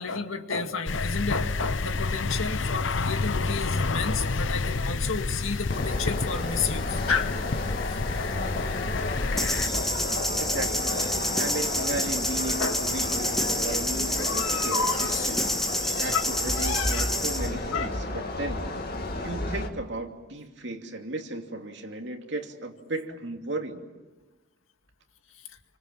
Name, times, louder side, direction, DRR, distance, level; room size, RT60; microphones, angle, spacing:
voice 1, 0.0-10.7 11.0-11.9 12.6-12.9 14.1-16.2 16.5-17.1 17.7-17.9 25.3-25.6, left 5 dB, 85° left, 6 dB, 2.1 m, -33 dB
sound 1, 0.9-9.7, left 3 dB, 70° left, 0.8 m, -29 dB
sound 2, 5.7-19.7, left 2 dB, 50° left, 2.7 m, -32 dB
sound 3, 9.4-17.5, equal, ahead, 1.6 m, -29 dB
voice 2, 10.4-11.0 11.4-14.8 15.3-15.6 16.0-18.6 19.1-23.9, right 2 dB, 60° right, 3 dB, 2.8 m, -35 dB
29.5 x 25.0 x 7.3 m, 1.1 s
head